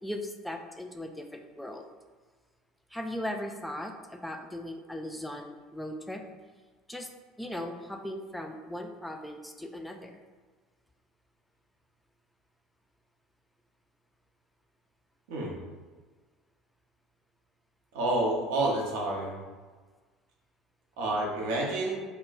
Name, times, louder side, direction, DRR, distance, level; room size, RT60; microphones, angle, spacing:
voice 1, 0.0-1.9 2.9-6.2 6.9-7.1 7.4-10.2, left 1 dB, 5° left, 4 dB, 0.3 m, -38 dB
voice 2, 17.9-19.4 21.0-22.0, right 2 dB, 65° right, -2 dB, 0.6 m, -29 dB
2.2 x 2.0 x 3.8 m, 1.4 s
figure-of-eight pair, 65°, 0 cm